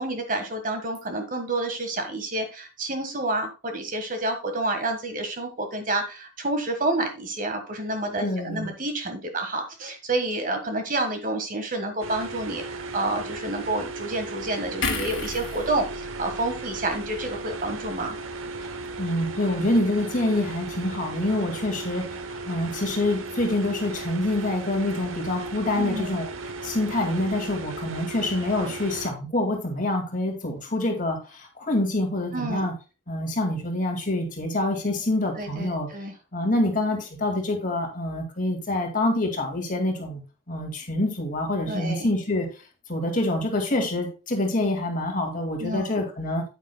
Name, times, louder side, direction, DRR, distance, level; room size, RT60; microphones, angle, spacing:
voice 1, 0.0-18.2 25.8-26.1 32.3-32.7 35.4-36.1 41.7-42.1 45.6-45.9, right 2 dB, 40° right, 6 dB, 1.5 m, -29 dB
voice 2, 8.2-8.7 18.6-18.7 19.0-26.3 26.6-32.7 33.1-35.9 36.3-40.2 40.5-42.5 42.9-46.4, left 1 dB, 40° left, 2 dB, 2.1 m, -26 dB
sound 1, 12.0-29.1, right 3 dB, 85° right, 0.9 m, -36 dB
sound 2, 14.8-18.2 18.5-18.7, left 4 dB, 65° left, 1.8 m, -35 dB
9.0 x 8.8 x 2.2 m, 0.31 s
head